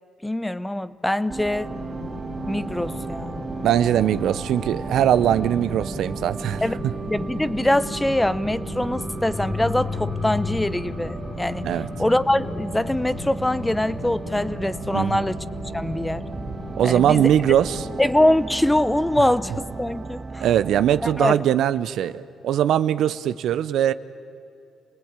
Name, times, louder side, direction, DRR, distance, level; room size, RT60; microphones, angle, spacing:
voice 1, 0.2-1.7 2.5-3.4 6.6-11.7 12.0-15.4 15.7-16.3 16.8-17.3 18.0-20.5 21.0-21.4, left 1 dB, 10° left, 16 dB, 0.8 m, -23 dB
sound 1, 1.3-21.2, right 4 dB, 30° right, 0.8 m, -35 dB
sound 2, 1.6-17.9, left 3 dB, 80° left, 5.5 m, -38 dB
voice 2, 3.6-6.6 11.6-11.9 14.9-15.3 16.8-17.8 20.4-23.9, right 10 dB, 75° right, 14 dB, 0.7 m, -21 dB
sound 3, 8.4-17.5 17.9-18.0, left 4 dB, 30° left, 1.9 m, -36 dB
28.5 x 19.5 x 8.9 m, 2.5 s
cardioid pair, 75°, 0 cm